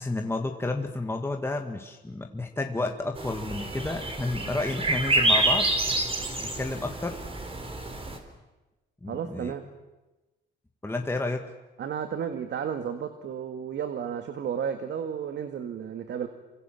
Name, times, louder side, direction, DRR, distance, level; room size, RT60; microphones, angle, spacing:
voice 1, 0.0-5.7 6.4-7.2 9.0-9.5 10.8-11.5, left 2 dB, 10° left, 4 dB, 1.8 m, -31 dB
sound 1, 3.2-8.2, right 1 dB, 30° right, 4.7 m, -27 dB
voice 2, 9.1-9.6 11.8-16.3, right 8 dB, 65° right, 8 dB, 2.0 m, -32 dB
27.5 x 24.5 x 7.6 m, 1.1 s
cardioid pair, 90°, 20 cm